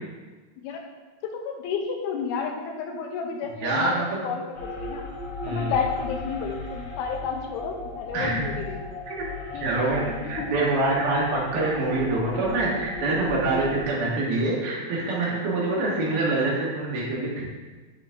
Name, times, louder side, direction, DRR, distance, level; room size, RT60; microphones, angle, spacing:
voice 1, 0.6-0.9 1.2-5.0 5.5-8.8 9.5-9.9 10.2-10.5 16.0-16.2, left 5 dB, 85° left, 3 dB, 2.5 m, -31 dB
voice 2, 3.6-4.2 5.4-5.7 8.1-8.5 9.1-9.2 9.6-17.4, right 2 dB, 70° right, -5 dB, 3.3 m, -25 dB
sound 1, 4.5-13.8, left 2 dB, 60° left, 2.6 m, -36 dB
11.0 x 4.0 x 3.6 m, 1.3 s
omnidirectional pair, 4.6 m